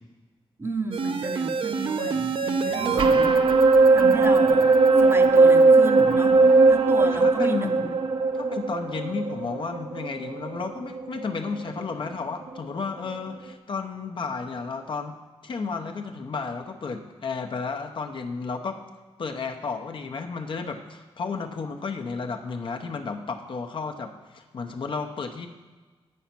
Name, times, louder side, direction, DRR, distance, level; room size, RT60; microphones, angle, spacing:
voice 1, 0.6-6.4 6.7-7.7, right 2 dB, 25° right, 6 dB, 0.7 m, -33 dB
sound 1, 0.9-11.3 11.7-11.8, right 3 dB, 55° right, 0.6 m, -19 dB
voice 2, 7.1-7.9 8.3-15.2 15.4-18.8 19.2-25.5, left 4 dB, 55° left, 4 dB, 0.8 m, -32 dB
8.2 x 6.4 x 5.8 m, 1.3 s
wide cardioid pair, 105°, 10 cm